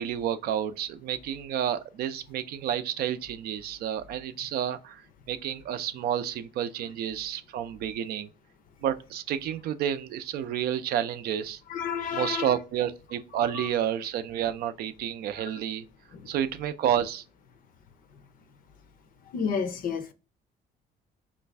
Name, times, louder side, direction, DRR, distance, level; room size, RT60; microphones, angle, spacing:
voice 1, 0.0-5.0 5.3-8.3 8.8-11.6 12.1-15.8 16.3-17.2, right 10 dB, 65° right, 0.4 m, -30 dB
voice 2, 11.7-12.5 13.5-13.7 16.1-16.2 19.3-20.1, left 6 dB, 55° left, 0.5 m, -30 dB
3.1 x 2.5 x 3.3 m
cardioid pair, 110°, 17 cm